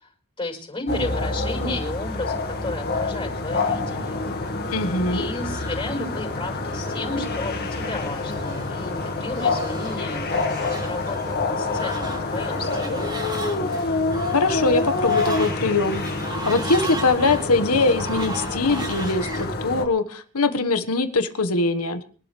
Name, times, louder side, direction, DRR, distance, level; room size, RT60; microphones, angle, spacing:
voice 1, 0.4-4.2 5.1-13.1, left 2 dB, 25° left, 0 dB, 5.2 m, -33 dB
sound 1, 0.9-19.8, left 3 dB, 45° left, 2.0 m, -27 dB
voice 2, 4.7-5.3 14.3-16.0 16.4-22.0, left 3 dB, 85° left, 9 dB, 1.6 m, -22 dB
Fowl, 4.7-19.5, right 2 dB, 20° right, 3.2 m, -38 dB
24.5 x 12.0 x 3.4 m, 0.42 s
head